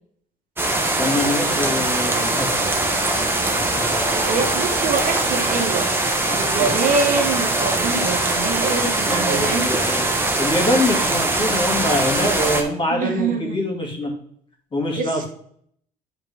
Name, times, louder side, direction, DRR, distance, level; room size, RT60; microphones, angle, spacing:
sound 1, 0.6-12.6, right 2 dB, 15° right, 1.4 m, -21 dB
voice 1, 1.0-2.8 6.6-6.7 9.1-10.0 10.4-14.1 14.7-15.3, left 1 dB, 30° left, 0 dB, 2.6 m, -24 dB
sound 2, 3.8-5.4 6.4-8.0, equal, 65° left, 2.2 m, -37 dB
voice 2, 4.3-5.9 6.3-9.7 12.9-13.6 14.9-15.3, right 4 dB, 55° right, 3 dB, 1.4 m, -24 dB
8.7 x 4.5 x 3.7 m, 0.64 s
cardioid pair, 110°, 17 cm